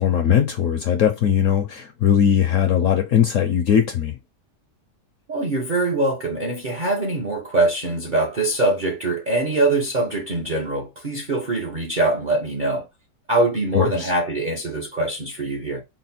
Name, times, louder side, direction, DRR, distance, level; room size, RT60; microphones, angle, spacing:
voice 1, 0.0-4.2 13.7-14.1, left 8 dB, 65° left, 0.8 m, -19 dB
voice 2, 5.3-12.9 13.3-15.8, right 2 dB, 50° right, 0.6 m, -23 dB
4.2 x 2.1 x 4.1 m
omnidirectional pair, 1.8 m